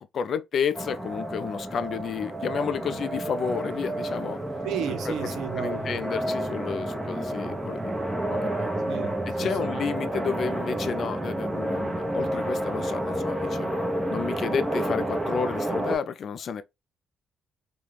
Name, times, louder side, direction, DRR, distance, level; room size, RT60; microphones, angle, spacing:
voice 1, 0.0-4.4 5.1-5.2 5.6-7.9 8.3-8.7 9.2-13.7 14.1-16.6, left 6 dB, 55° left, 0.3 m, -31 dB
sound 1, 0.7-16.0, right 1 dB, 15° right, 0.7 m, -30 dB
voice 2, 4.6-6.0 8.9-9.8, right 9 dB, 90° right, 0.6 m, -34 dB
2.4 x 2.2 x 3.2 m
cardioid pair, 90°, 0 cm